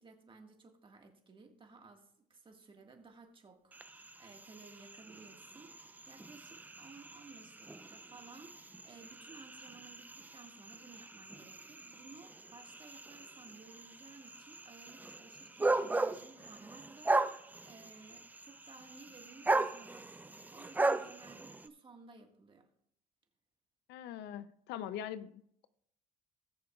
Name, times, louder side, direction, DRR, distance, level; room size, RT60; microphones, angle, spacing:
voice 1, 0.0-22.7, right 4 dB, 30° right, 3 dB, 1.7 m, -57 dB
sound 1, 3.7-21.7, right 2 dB, 10° right, 0.4 m, -38 dB
voice 2, 23.9-25.7, left 10 dB, 85° left, 14 dB, 0.6 m, -43 dB
19.0 x 6.8 x 2.4 m, 0.69 s
cardioid pair, 110°, 17 cm